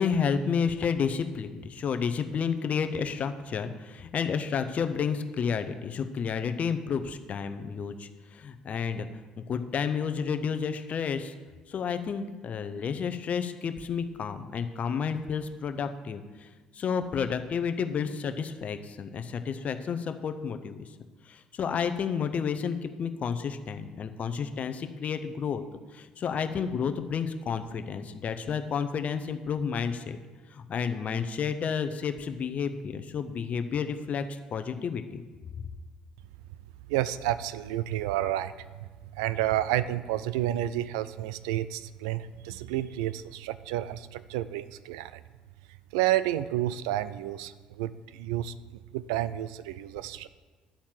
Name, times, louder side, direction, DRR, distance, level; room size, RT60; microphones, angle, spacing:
voice 1, 0.0-9.1 9.4-11.3 11.7-20.9 21.3-25.6 25.9-30.2 30.5-35.2 35.6-35.7, left 6 dB, 45° left, 9 dB, 0.7 m, -31 dB
voice 2, 36.9-38.5 38.8-45.2 45.9-48.5 48.9-50.3, right 13 dB, 75° right, 15 dB, 0.3 m, -30 dB
10.0 x 4.4 x 7.4 m, 1.4 s
hypercardioid pair, 55°, 3 cm